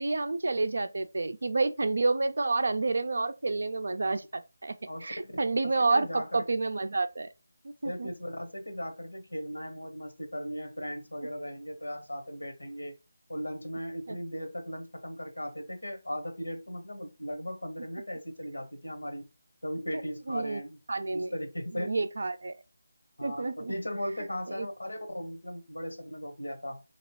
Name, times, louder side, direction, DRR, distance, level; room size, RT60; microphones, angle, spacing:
voice 1, 0.0-4.7 5.0-7.3 7.6-8.1 14.1-14.2 20.3-20.6 20.9-21.3 21.7-22.6 23.2-23.7 24.5-24.7, right 3 dB, 65° right, 0.4 m, -29 dB
voice 2, 4.9-5.3 5.6-6.4 7.8-13.0 13.3-19.3 19.6-20.8 21.1-21.9 23.2-26.8, equal, 90° left, 1.0 m, -37 dB
2.9 x 2.9 x 2.9 m
figure-of-eight pair, 160°, 0 cm